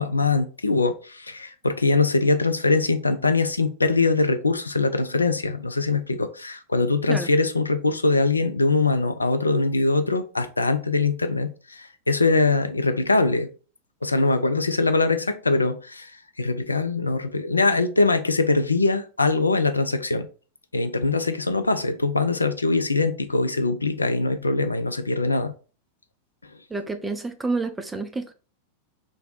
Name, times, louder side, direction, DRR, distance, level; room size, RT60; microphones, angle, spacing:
voice 1, 0.0-13.5 14.0-16.1 16.4-20.3 20.7-25.5, left 3 dB, 80° left, 0.3 m, -22 dB
voice 2, 26.7-28.3, right 3 dB, 10° right, 0.5 m, -29 dB
3.3 x 2.6 x 3.8 m
figure-of-eight pair, 90°, 0 cm